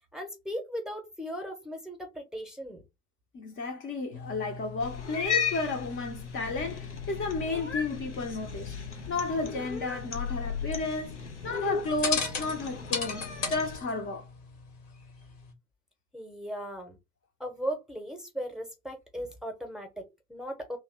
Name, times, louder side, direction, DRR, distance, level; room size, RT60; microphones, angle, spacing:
voice 1, 0.1-2.8 16.1-17.0 17.4-20.8, equal, ahead, 0.9 m, -37 dB
voice 2, 3.3-8.7 9.1-14.3, left 3 dB, 35° left, 0.8 m, -33 dB
sound 1, 4.1-15.5, left 4 dB, 60° left, 1.2 m, -39 dB
Cat, 4.8-13.8, left 6 dB, 90° left, 0.5 m, -36 dB
2.7 x 2.1 x 3.6 m
figure-of-eight pair, 60°, 34 cm